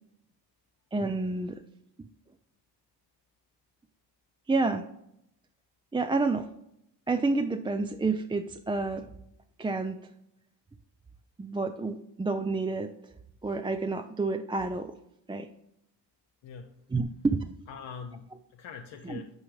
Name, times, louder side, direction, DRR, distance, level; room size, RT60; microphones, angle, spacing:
voice 1, 0.9-1.6 4.5-4.9 5.9-6.5 7.1-9.1 9.6-10.0 11.4-12.9 13.4-15.0 15.3-15.5 16.9-17.5, right 3 dB, 15° right, 8 dB, 0.3 m, -29 dB
voice 2, 16.4-16.8 17.7-19.3, left 6 dB, 85° left, 3 dB, 0.7 m, -43 dB
9.2 x 4.9 x 3.2 m, 0.79 s
cardioid pair, 60°, 43 cm